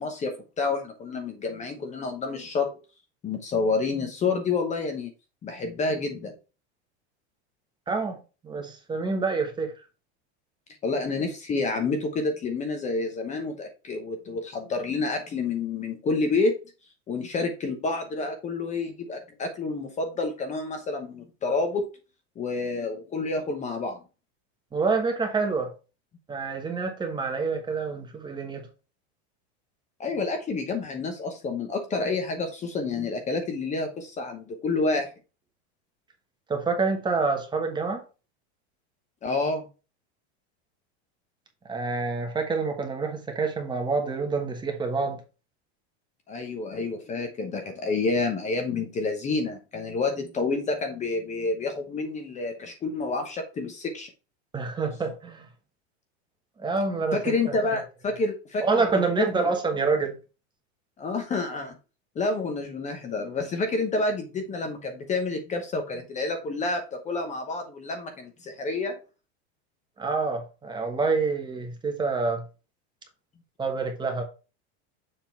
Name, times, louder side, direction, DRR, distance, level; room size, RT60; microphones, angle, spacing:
voice 1, 0.0-2.7 3.2-5.1 5.4-6.3 10.8-16.5 17.1-21.9 22.4-24.0 30.0-35.1 39.2-39.7 46.3-54.1 57.1-58.8 59.2-59.4 61.0-61.8 62.1-69.0, left 3 dB, 20° left, 0.9 m, -29 dB
voice 2, 7.9-8.2 8.4-9.7 24.7-25.7 26.3-28.7 36.5-38.0 41.7-45.2 54.5-55.5 56.6-57.8 58.6-60.2 70.0-72.4 73.6-74.2, right 4 dB, 15° right, 1.2 m, -27 dB
7.0 x 3.8 x 4.5 m
supercardioid pair, 150°, 33 cm